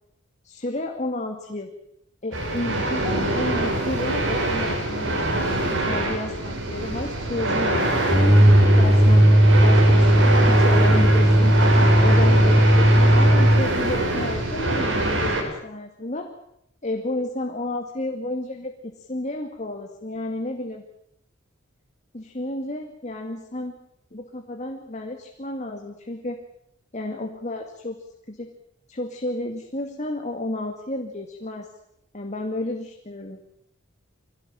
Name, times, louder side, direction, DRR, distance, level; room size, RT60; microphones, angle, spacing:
voice 1, 0.4-1.7 2.2-8.1 8.8-11.5 12.0-16.3 16.8-20.8 22.1-23.7 24.1-26.4 26.9-28.0 28.3-28.5 28.9-31.7 32.1-33.4, left 1 dB, 40° left, 4 dB, 2.3 m, -31 dB
sound 1, 2.3-15.4, right 1 dB, 80° right, 6.7 m, -24 dB
sound 2, 8.1-13.7, equal, ahead, 1.2 m, -16 dB
25.0 x 17.5 x 8.9 m, 0.79 s
head